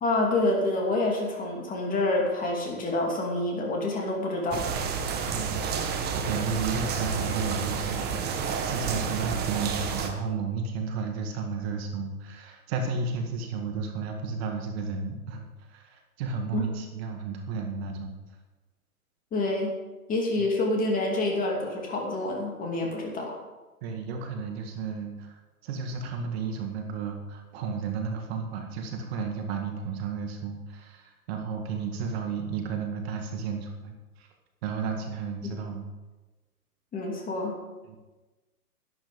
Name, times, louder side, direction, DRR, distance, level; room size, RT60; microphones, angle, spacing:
voice 1, 0.0-4.7 16.5-16.6 19.3-19.7 20.1-23.4 36.9-37.5, left 2 dB, 20° left, -1 dB, 2.7 m, -27 dB
sound 1, 4.5-10.1, right 6 dB, 20° right, 1.3 m, -30 dB
voice 2, 5.3-18.1 23.8-34.3 34.6-35.9 37.9-38.0, right 5 dB, 40° right, 3 dB, 1.8 m, -33 dB
11.5 x 11.5 x 5.2 m, 1.2 s
hypercardioid pair, 120°, 46 cm